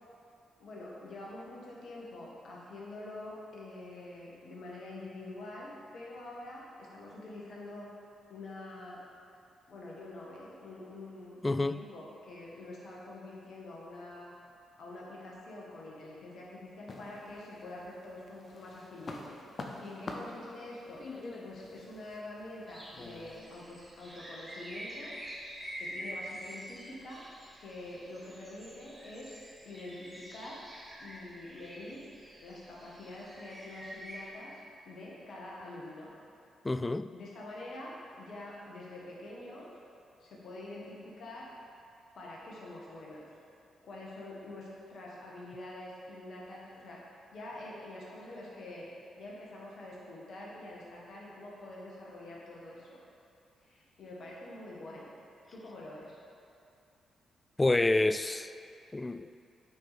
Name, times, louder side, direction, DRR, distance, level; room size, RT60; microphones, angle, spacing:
voice 1, 0.6-7.9 8.3-9.0 9.7-14.3 14.8-21.0 21.4-27.2 27.6-29.4 29.6-30.6 31.0-34.6 34.8-36.1 37.1-39.7 40.2-41.5 42.1-43.2 43.8-48.9 49.2-53.0 53.6-55.1 55.5-56.2, left 2 dB, 60° left, 1.7 m, -46 dB
voice 2, 11.4-11.8 36.6-37.1 57.6-58.5 58.9-59.3, left 2 dB, 20° left, 0.3 m, -28 dB
sound 1, 16.9-17.9 18.3-23.4, left 2 dB, 45° left, 0.8 m, -45 dB
sound 2, 22.7-34.3, equal, 20° right, 1.8 m, -47 dB
8.4 x 4.9 x 4.3 m
hypercardioid pair, 40°, 0 cm